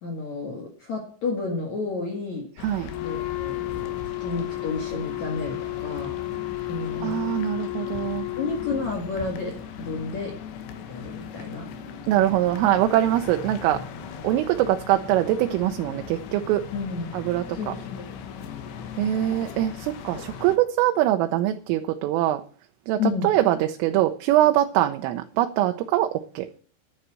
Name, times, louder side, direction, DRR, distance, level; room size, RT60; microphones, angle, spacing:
voice 1, 0.0-2.5 3.0-6.2 6.7-7.3 8.0-8.1 8.4-10.3 10.9-11.7 16.7-17.1 17.5-18.1 20.1-20.2 23.0-23.3, left 4 dB, 50° left, 2.3 m, -31 dB
sound 1, 2.6-20.6, left 7 dB, 70° left, 3.3 m, -39 dB
Wind instrument woodwind instrument, 2.8-9.0, left 20 dB, 85° left, 2.4 m, -32 dB
voice 2, 7.0-8.3 12.1-13.8 14.2-16.7 17.1-17.8 19.0-22.4 22.9-26.1 26.4-26.5, right 13 dB, 90° right, 3.4 m, -23 dB
10.0 x 9.7 x 7.6 m
omnidirectional pair, 5.7 m